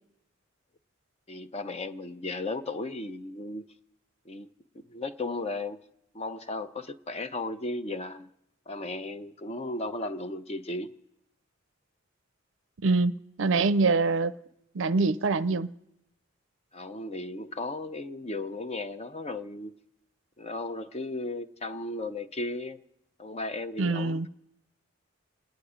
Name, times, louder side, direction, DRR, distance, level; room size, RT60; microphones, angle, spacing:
voice 1, 1.3-3.6 4.3-4.5 4.9-5.8 6.1-8.3 8.7-10.9 16.7-19.7 20.4-22.8 23.2-24.2, left 2 dB, 30° left, 0.6 m, -35 dB
voice 2, 12.8-14.3 14.7-15.7 23.8-24.3, right 3 dB, 70° right, 0.5 m, -24 dB
28.5 x 9.9 x 4.9 m
head